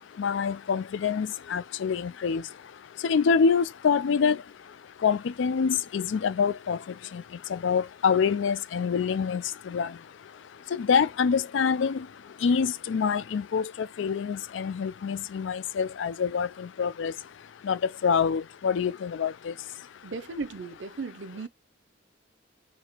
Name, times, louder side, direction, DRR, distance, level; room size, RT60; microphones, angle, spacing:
voice 1, 0.2-2.4 3.0-4.4 5.0-6.8 7.1-7.2 7.5-9.9 10.7-12.1 12.4-17.1 17.6-19.5, left 6 dB, 75° left, 0.4 m, -26 dB
voice 2, 20.0-21.5, right 3 dB, 70° right, 0.6 m, -36 dB
4.1 x 2.8 x 4.4 m
head